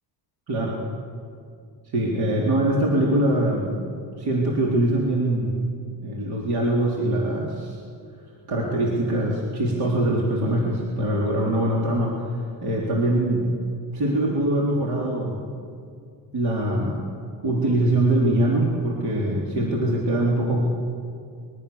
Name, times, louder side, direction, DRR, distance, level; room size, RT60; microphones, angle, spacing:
voice 1, 0.5-0.8 1.9-3.9 4.2-5.5 6.0-7.8 8.5-13.5 13.9-15.5 16.3-17.1 17.4-20.6, right 1 dB, 55° right, -3 dB, 3.9 m, -23 dB
25.5 x 22.5 x 7.1 m, 2.3 s
cardioid pair, 180°, 46 cm